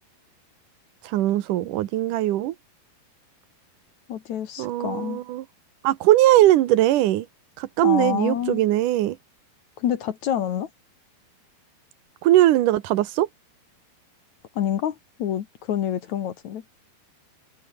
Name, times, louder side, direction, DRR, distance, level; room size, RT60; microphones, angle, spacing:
voice 1, 1.0-2.6 4.6-5.5 5.8-7.3 7.6-9.2 12.2-13.3, right 14 dB, 65° right, 2.3 m, -20 dB
voice 2, 4.1-5.2 7.8-8.6 9.8-10.7 14.6-16.6, left 10 dB, 60° left, 2.3 m, -27 dB
omnidirectional pair, 4.7 m